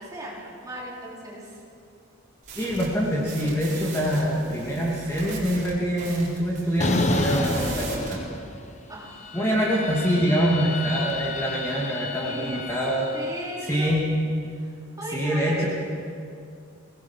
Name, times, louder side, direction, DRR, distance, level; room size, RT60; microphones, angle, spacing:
voice 1, 0.0-1.6 8.9-9.4 12.2-12.7 13.1-14.0 14.5-14.7 15.0-15.7, right 1 dB, 20° right, -5 dB, 4.5 m, -37 dB
sound 1, 2.4-8.2, right 4 dB, 40° right, 4.2 m, -40 dB
voice 2, 2.6-8.2 9.3-13.1 13.7-14.0 15.1-15.7, equal, 15° left, -5 dB, 2.8 m, -25 dB
sound 2, 6.8-8.8 9.1-13.4, left 2 dB, 35° left, 1.2 m, -30 dB
24.0 x 19.0 x 5.9 m, 2.4 s
head